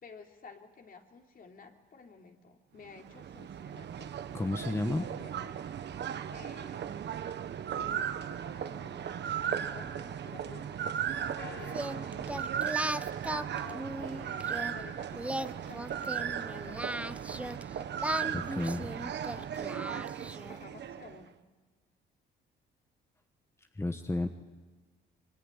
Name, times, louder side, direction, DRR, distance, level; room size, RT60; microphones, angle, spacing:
voice 1, 0.0-4.2 4.4-5.7 6.3-7.0 7.7-9.2 9.5-11.3 11.6-12.8 13.6-18.7 19.3-20.2 20.5-21.4, left 5 dB, 45° left, 3 dB, 3.3 m, -53 dB
sound 1, 2.8-21.2, right 9 dB, 60° right, 1.3 m, -37 dB
voice 2, 4.3-5.0 18.3-18.9 23.7-24.3, left 2 dB, 15° left, 6 dB, 1.3 m, -32 dB
sound 2, 11.4-14.1, left 8 dB, 65° left, 3.6 m, -52 dB
Singing, 11.7-14.7 15.2-17.6 18.0-20.6, right 1 dB, 5° right, 0.8 m, -37 dB
26.0 x 23.0 x 9.9 m, 1.3 s
cardioid pair, 90°, 20 cm